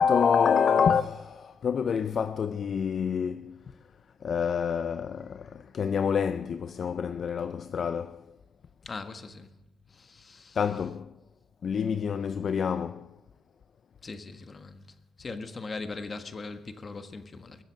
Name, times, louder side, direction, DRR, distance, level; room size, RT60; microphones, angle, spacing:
voice 1, 0.0-3.6 4.2-8.2 10.5-11.1 11.6-13.1, left 7 dB, 50° left, 0.5 m, -27 dB
voice 2, 8.8-9.6 9.9-10.6 14.0-14.9 15.2-17.6, left 3 dB, 35° left, 1.4 m, -40 dB
22.0 x 7.7 x 6.4 m
cardioid pair, 90°, 0 cm